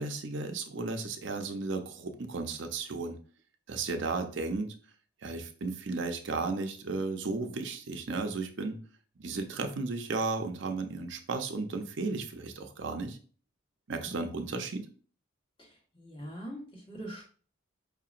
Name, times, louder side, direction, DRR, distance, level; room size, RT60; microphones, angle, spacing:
voice 1, 0.0-3.2 3.7-4.7 5.2-8.8 9.2-13.2 13.9-14.9, right 3 dB, 65° right, 5 dB, 0.6 m, -34 dB
voice 2, 14.0-14.4 15.6-15.7 15.9-17.2, equal, 25° left, -3 dB, 1.2 m, -43 dB
5.0 x 2.8 x 2.4 m, 0.41 s
head